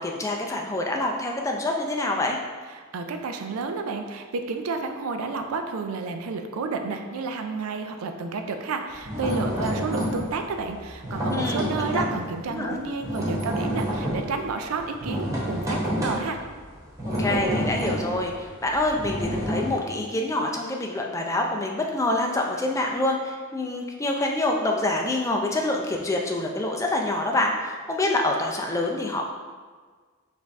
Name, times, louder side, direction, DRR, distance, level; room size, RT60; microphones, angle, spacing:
voice 1, 0.0-2.4 11.3-12.0 12.5-12.8 17.2-29.3, left 2 dB, 15° left, 0 dB, 0.4 m, -26 dB
voice 2, 2.7-16.4, right 4 dB, 80° right, 6 dB, 0.4 m, -31 dB
sound 1, 8.9-12.3 12.6-19.8, equal, 15° right, 0.8 m, -29 dB
5.2 x 2.6 x 3.5 m, 1.5 s
head